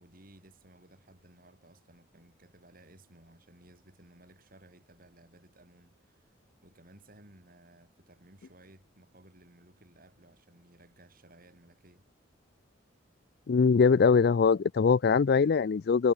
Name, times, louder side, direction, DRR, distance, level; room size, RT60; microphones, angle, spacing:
voice 1, 0.0-12.1, right 1 dB, 45° right, 5.9 m, -58 dB
voice 2, 13.5-16.1, left 5 dB, 55° left, 0.4 m, -22 dB
head